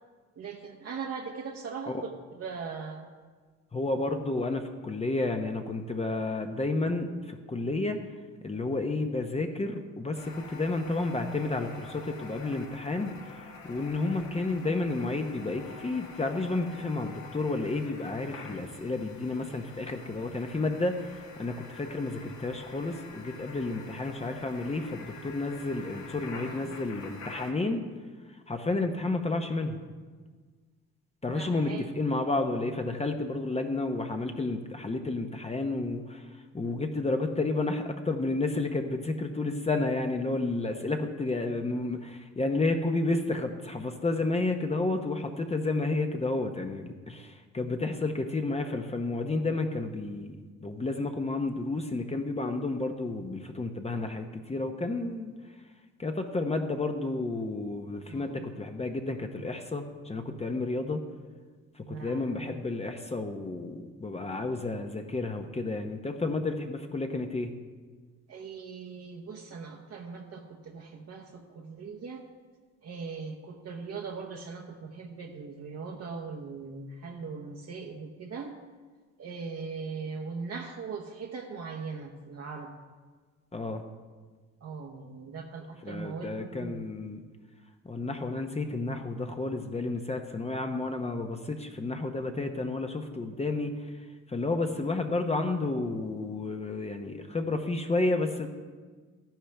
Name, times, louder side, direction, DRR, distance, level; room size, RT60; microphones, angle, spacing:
voice 1, 0.4-3.1 26.4-26.7 31.3-31.9 58.1-58.4 61.9-62.6 68.3-72.2 72.8-78.5 79.2-82.7 84.6-86.8, right 5 dB, 55° right, 1 dB, 1.1 m, -40 dB
voice 2, 3.7-8.0 8.4-13.4 13.6-27.8 28.5-29.8 31.2-55.3 56.0-61.0 61.7-67.5 83.5-83.8 85.8-87.2 87.8-93.9 94.3-98.5, left 2 dB, 20° left, 5 dB, 0.9 m, -31 dB
sound 1, 10.1-27.5, left 4 dB, 70° left, 2.0 m, -47 dB
13.0 x 10.5 x 3.4 m, 1.5 s
cardioid pair, 90°, 30 cm